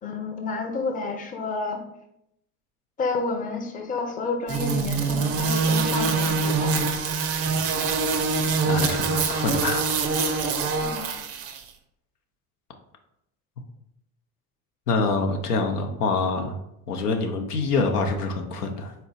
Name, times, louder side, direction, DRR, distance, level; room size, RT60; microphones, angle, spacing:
voice 1, 0.0-1.8 3.0-6.8 10.8-11.1, left 3 dB, 20° left, 4 dB, 0.5 m, -30 dB
sound 1, 4.5-11.6, right 4 dB, 35° right, 0.5 m, -24 dB
voice 2, 8.7-9.8 10.2-10.6 14.9-16.6 16.9-18.9, left 3 dB, 85° left, 4 dB, 0.6 m, -26 dB
4.1 x 2.2 x 3.9 m, 0.79 s
figure-of-eight pair, 65°, 45 cm